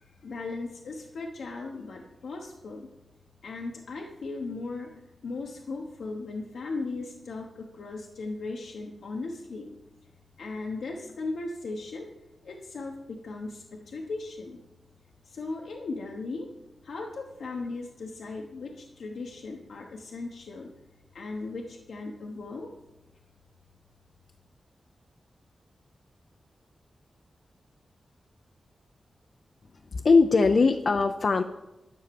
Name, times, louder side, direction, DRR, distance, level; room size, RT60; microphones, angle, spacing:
voice 1, 0.2-2.9 3.4-4.9 5.2-9.7 10.4-12.1 12.4-14.6 15.3-16.5 16.8-20.7 21.1-22.7, left 3 dB, 80° left, 1 dB, 1.1 m, -37 dB
voice 2, 29.9-31.4, left 4 dB, 65° left, 6 dB, 0.6 m, -20 dB
11.0 x 6.5 x 6.9 m, 0.98 s
cardioid pair, 55°, 0 cm